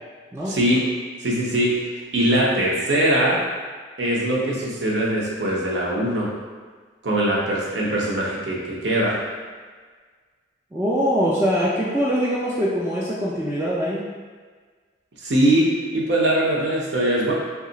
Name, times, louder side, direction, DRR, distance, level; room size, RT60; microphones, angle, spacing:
voice 1, 0.5-0.8 1.2-1.7 2.1-3.4 4.0-6.3 7.0-9.2 15.2-17.3, right 1 dB, 80° right, -4 dB, 0.8 m, -21 dB
voice 2, 10.7-14.0, equal, 15° right, -7 dB, 0.4 m, -23 dB
2.9 x 2.4 x 3.9 m, 1.5 s
head